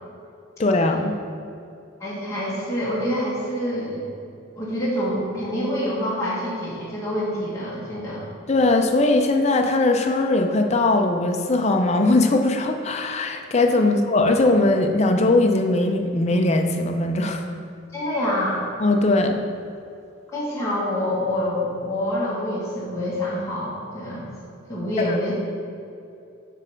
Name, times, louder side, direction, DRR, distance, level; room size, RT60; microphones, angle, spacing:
voice 1, 0.6-1.1 8.5-17.4 18.8-19.4 25.0-25.2, left 2 dB, 30° left, 4 dB, 0.5 m, -20 dB
voice 2, 2.0-4.1 4.6-8.2 17.9-18.6 20.3-24.3 24.7-25.3, left 1 dB, 15° left, -9 dB, 1.3 m, -26 dB
7.6 x 3.3 x 6.2 m, 2.6 s
head